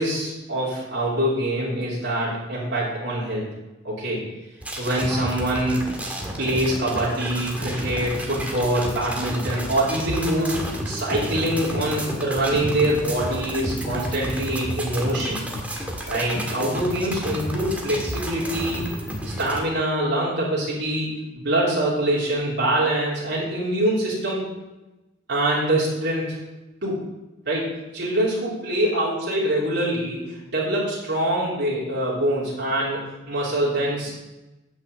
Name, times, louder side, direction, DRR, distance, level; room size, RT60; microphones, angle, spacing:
voice 1, 0.0-3.5 3.8-4.2 4.8-5.9 6.4-15.4 16.1-18.8 19.2-24.5 25.3-26.4 26.8-26.9 27.5-34.1, right 1 dB, 65° right, -7 dB, 3.1 m, -24 dB
sound 1, 4.6-19.6, equal, 10° right, 1.6 m, -31 dB
9.4 x 5.9 x 7.2 m, 1.0 s
head